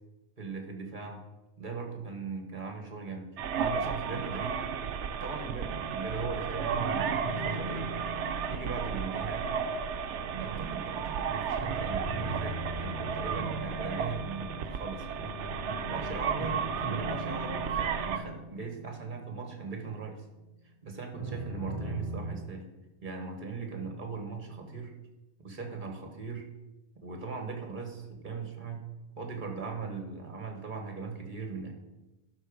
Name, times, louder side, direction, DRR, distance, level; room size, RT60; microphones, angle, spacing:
voice 1, 0.4-1.2 1.6-3.3 3.5-4.7 5.2-7.9 8.5-9.6 10.4-15.2 15.9-20.2 20.8-22.7 23.0-24.9 25.4-26.5 27.0-28.9 29.2-31.7, right 4 dB, 45° right, 3 dB, 1.5 m, -39 dB
sound 1, 3.4-18.2, right 7 dB, 85° right, 0.9 m, -33 dB
sound 2, 6.7-10.7 11.6-20.4 21.2-22.3, right 1 dB, 25° left, 3.3 m, -41 dB
12.0 x 4.0 x 5.2 m, 1.0 s
omnidirectional pair, 1.1 m